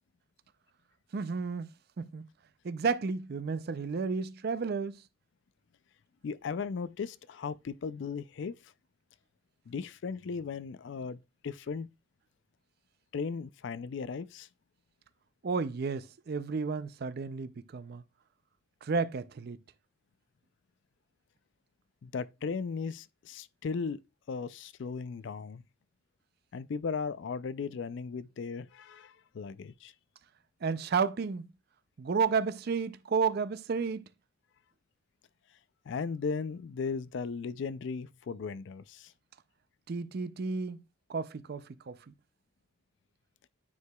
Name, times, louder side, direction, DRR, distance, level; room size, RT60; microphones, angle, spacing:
voice 1, 1.1-1.7 2.0-2.3 2.6-5.0 15.4-18.0 18.8-19.6 30.6-31.5 32.0-34.0 39.9-40.8 41.1-42.1, right 5 dB, 50° right, 0.4 m, -32 dB
voice 2, 6.2-8.5 9.7-11.9 13.1-14.5 22.0-24.0 24.3-25.6 26.5-29.9 35.9-39.1, left 5 dB, 60° left, 0.4 m, -37 dB
9.4 x 4.8 x 2.3 m
head